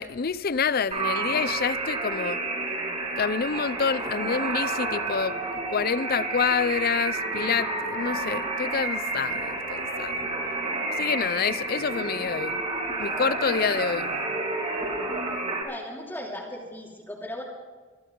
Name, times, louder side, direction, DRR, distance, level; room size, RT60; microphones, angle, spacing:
voice 1, 0.0-2.4 3.2-5.4 5.7-10.2 11.0-12.6 13.0-14.2, left 6 dB, 50° left, 0.6 m, -27 dB
sound 1, 0.9-15.6, right 2 dB, 35° right, 3.8 m, -30 dB
voice 2, 15.6-17.4, left 1 dB, 10° left, 2.9 m, -37 dB
24.5 x 12.0 x 3.9 m
head